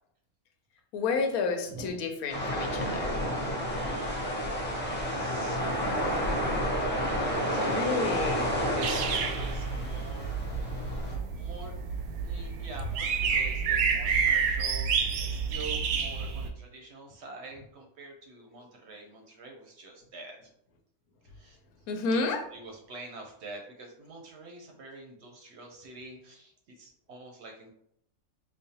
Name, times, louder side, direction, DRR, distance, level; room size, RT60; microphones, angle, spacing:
voice 1, 0.9-3.1 7.7-8.4 21.9-22.4, left 4 dB, 90° left, 5 dB, 1.1 m, -30 dB
voice 2, 1.7-2.1 3.5-4.3 4.9-6.7 7.2-11.7 12.2-20.5 21.2-21.6 22.2-27.7, right 3 dB, 60° right, 2 dB, 0.7 m, -46 dB
sound 1, 2.3-11.2, equal, 10° left, 0.6 m, -30 dB
sound 2, 8.8-16.5, right 6 dB, 90° right, 1.1 m, -29 dB
5.3 x 2.1 x 2.7 m, 0.73 s
omnidirectional pair, 1.5 m